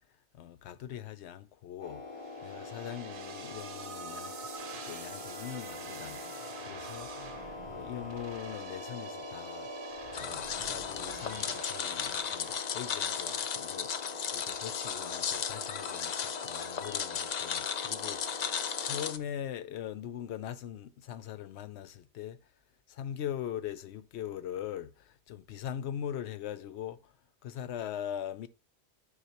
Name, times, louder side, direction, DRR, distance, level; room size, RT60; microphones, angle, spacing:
voice 1, 0.3-6.2 6.6-7.1 7.7-9.7 10.2-22.4 22.9-27.2 27.4-28.5, left 10 dB, 75° left, 0.8 m, -41 dB
sound 1, 1.8-19.1, left 3 dB, 30° left, 0.8 m, -44 dB
sound 2, 2.2-13.5, right 6 dB, 55° right, 0.8 m, -47 dB
sound 3, 10.1-19.2, left 7 dB, 55° left, 0.5 m, -35 dB
9.6 x 4.7 x 2.9 m
omnidirectional pair, 1.2 m